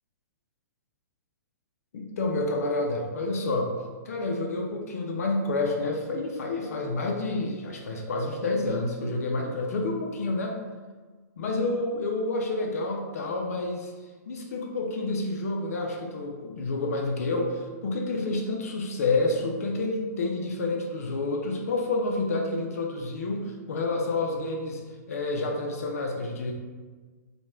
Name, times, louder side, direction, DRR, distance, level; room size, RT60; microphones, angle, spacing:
voice 1, 1.9-3.7 4.0-10.6 11.4-13.9 14.3-24.8 25.1-26.5, left 2 dB, 55° left, 1 dB, 0.4 m, -29 dB
2.9 x 2.1 x 3.3 m, 1.4 s
figure-of-eight pair, 115°, 10 cm